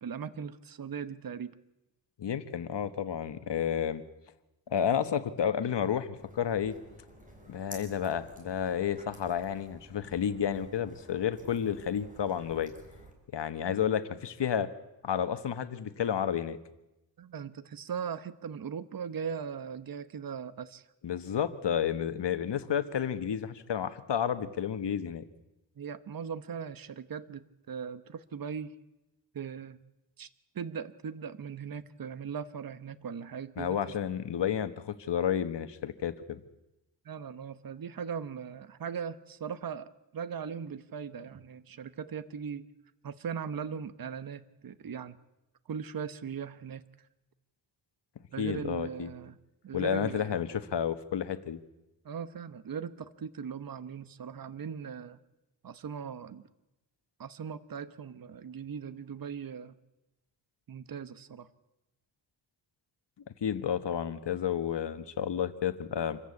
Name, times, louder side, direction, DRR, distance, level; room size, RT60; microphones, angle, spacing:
voice 1, 0.0-1.6 17.2-20.8 25.8-28.8 29.3-29.8 30.2-30.3 30.5-33.8 37.0-42.7 43.0-45.2 45.7-46.8 48.3-49.4 49.6-50.3 52.0-55.2 55.6-56.4 57.2-59.7 60.7-61.5, right 7 dB, 50° right, 14 dB, 1.0 m, -39 dB
voice 2, 2.2-4.0 4.7-6.8 7.5-12.7 13.3-14.7 15.0-16.6 21.0-25.2 33.6-36.4 48.4-49.1 49.7-51.6 63.4-66.2, left 8 dB, 65° left, 11 dB, 1.4 m, -31 dB
sound 1, 6.2-13.1, equal, 15° right, 4.8 m, -52 dB
27.0 x 14.5 x 8.5 m, 0.97 s
wide cardioid pair, 135°, 45 cm